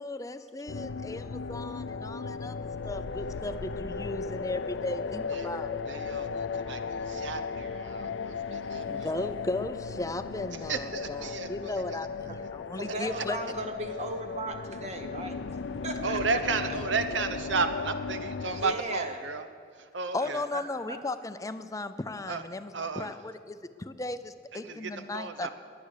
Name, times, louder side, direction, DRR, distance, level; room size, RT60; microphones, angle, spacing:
voice 1, 0.0-2.6 2.8-5.8 8.9-13.4 16.7-17.2 20.1-25.5, left 2 dB, 20° left, 11 dB, 0.5 m, -36 dB
sound 1, 0.7-18.7, left 4 dB, 75° left, 0.5 m, -36 dB
voice 2, 5.9-9.1 10.7-12.0 13.1-13.2 16.0-19.5 19.9-20.4 22.3-22.4 22.7-23.1 24.5-25.5, right 4 dB, 75° right, 10 dB, 1.0 m, -33 dB
voice 3, 12.7-15.4 15.8-16.4 16.7-16.8 18.5-19.2 20.5-20.6 20.9-21.0, right 1 dB, 35° right, 5 dB, 1.2 m, -36 dB
22.0 x 9.4 x 6.7 m, 2.2 s
head